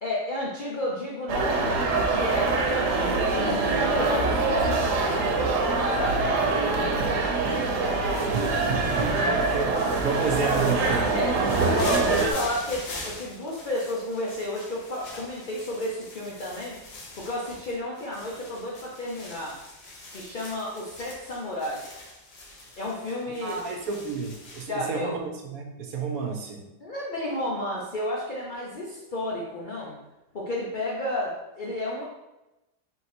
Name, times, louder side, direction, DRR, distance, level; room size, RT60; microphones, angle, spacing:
voice 1, 0.0-5.4 5.9-6.3 11.1-11.4 11.6-16.8 17.2-19.6 20.1-21.9 22.8-23.6 24.7-25.1 26.8-30.0 30.3-32.0, left 1 dB, 70° left, -4 dB, 0.4 m, -32 dB
sound 1, 1.3-12.3, right 3 dB, 90° right, 1.2 m, -24 dB
sound 2, 8.1-24.7, left 2 dB, 85° left, 1.5 m, -43 dB
voice 2, 10.0-11.6 23.4-26.6, right 5 dB, 70° right, 2 dB, 1.0 m, -31 dB
3.8 x 2.6 x 4.2 m, 0.98 s
omnidirectional pair, 1.7 m